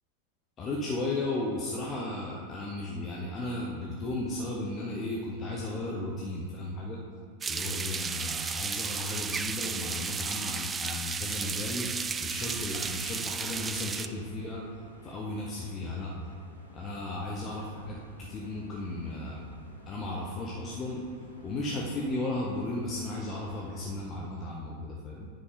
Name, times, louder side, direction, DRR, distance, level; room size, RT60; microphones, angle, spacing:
voice 1, 0.6-7.0 7.5-11.9 12.2-14.6 15.0-16.1 16.7-19.4 19.9-21.0 21.4-25.3, left 2 dB, 25° left, -3 dB, 0.9 m, -35 dB
sound 1, 7.4-14.1, right 5 dB, 20° right, 0.3 m, -33 dB
sound 2, 11.3-24.0, left 1 dB, 85° left, 1.3 m, -53 dB
9.6 x 5.2 x 3.7 m, 2.1 s
figure-of-eight pair, 90°, 0 cm